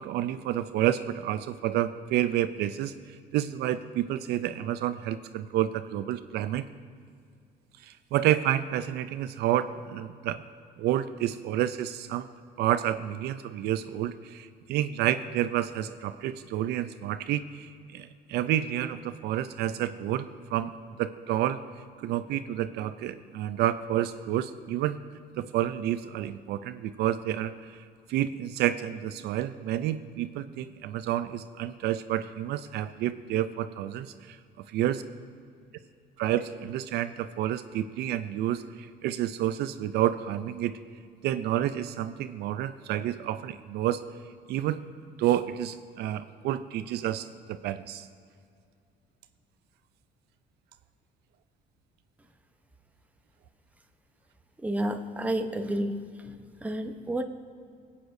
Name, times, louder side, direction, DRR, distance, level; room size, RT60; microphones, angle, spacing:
voice 1, 0.0-2.9 3.3-6.7 7.8-10.4 10.8-12.3 12.6-20.7 21.0-21.6 22.0-25.0 25.4-27.8 28.1-35.0 36.2-40.8 41.2-44.0 44.5-44.8 45.2-48.1, right 12 dB, 75° right, 12 dB, 0.4 m, -29 dB
voice 2, 54.6-55.9 56.2-56.3 56.6-57.2, right 1 dB, 10° right, 5 dB, 0.8 m, -30 dB
23.0 x 8.3 x 2.6 m, 2.3 s
cardioid pair, 110°, 17 cm